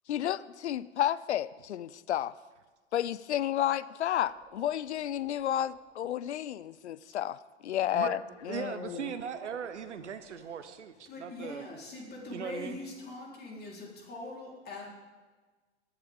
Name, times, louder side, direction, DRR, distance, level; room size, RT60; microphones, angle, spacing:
voice 1, 0.1-2.3 2.9-7.3 7.7-9.1, left 11 dB, 70° left, 18 dB, 0.6 m, -31 dB
sound 1, 4.3-6.8 7.1-7.2 8.2-10.9, right 4 dB, 15° right, 1.3 m, -55 dB
voice 2, 8.5-11.6 12.3-12.8, right 7 dB, 75° right, 10 dB, 0.9 m, -39 dB
voice 3, 10.9-14.9, left 2 dB, 25° left, -2 dB, 4.0 m, -43 dB
19.0 x 11.5 x 3.7 m, 1.3 s
figure-of-eight pair, 95°, 35 cm